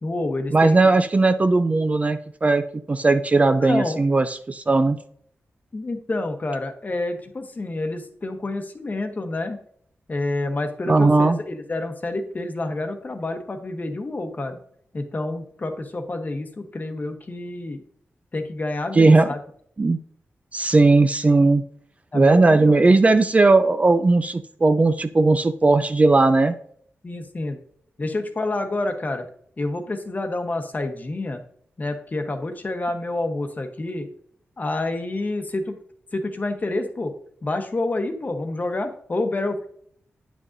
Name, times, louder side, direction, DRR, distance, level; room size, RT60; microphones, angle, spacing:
voice 1, 0.0-0.9 3.6-4.0 5.7-9.6 10.1-14.6 14.9-17.8 18.3-19.4 22.1-22.9 27.0-27.6 28.0-29.3 29.6-31.4 31.8-34.1 34.6-35.7 36.1-37.1 37.4-39.7, left 2 dB, 35° left, 6 dB, 1.0 m, -28 dB
voice 2, 0.5-2.6 2.9-5.0 10.9-11.4 18.9-19.3 19.8-20.0 20.5-21.6 22.1-26.5, right 3 dB, 30° right, 9 dB, 0.4 m, -17 dB
8.9 x 6.2 x 2.6 m, 0.63 s
wide cardioid pair, 95°, 5 cm